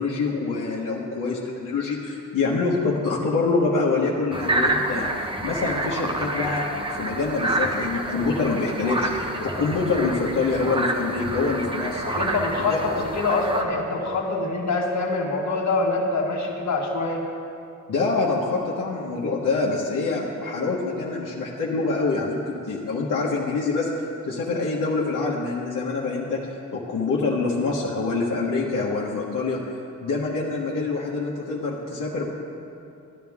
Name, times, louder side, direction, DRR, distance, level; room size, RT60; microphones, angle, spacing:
voice 1, 0.0-12.1 12.7-12.8 17.9-23.9 24.2-29.6 30.0-32.2, left 3 dB, 70° left, -5 dB, 1.5 m, -25 dB
sound 1, 4.3-13.6, right 1 dB, 15° right, 0.9 m, -28 dB
voice 2, 12.0-17.2, left 3 dB, 55° left, -1 dB, 1.7 m, -25 dB
13.5 x 10.5 x 3.6 m, 2.6 s
cardioid pair, 90°, 32 cm